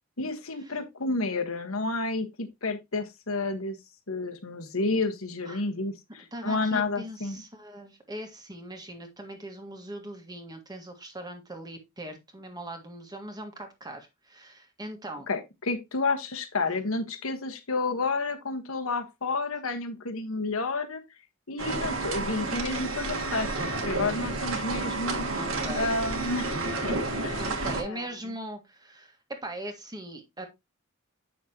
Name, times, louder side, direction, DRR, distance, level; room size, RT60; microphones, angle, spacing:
voice 1, 0.2-3.8 4.1-7.4 15.3-21.0 21.5-25.3 25.7-27.4 27.8-28.1, left 3 dB, 70° left, 1.4 m, -30 dB
voice 2, 6.3-15.3 25.4-26.0 27.4-30.5, right 1 dB, 20° right, 1.6 m, -40 dB
sound 1, 21.6-27.8, right 3 dB, 65° right, 1.7 m, -31 dB
8.4 x 6.2 x 2.9 m
head